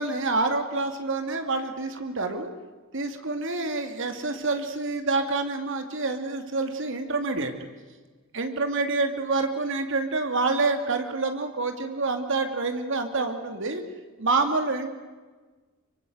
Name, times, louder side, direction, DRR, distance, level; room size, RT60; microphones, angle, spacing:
voice 1, 0.0-2.5 2.9-7.5 8.3-13.8 14.2-14.9, right 3 dB, 65° right, 6 dB, 2.7 m, -27 dB
25.5 x 24.0 x 8.0 m, 1.3 s
head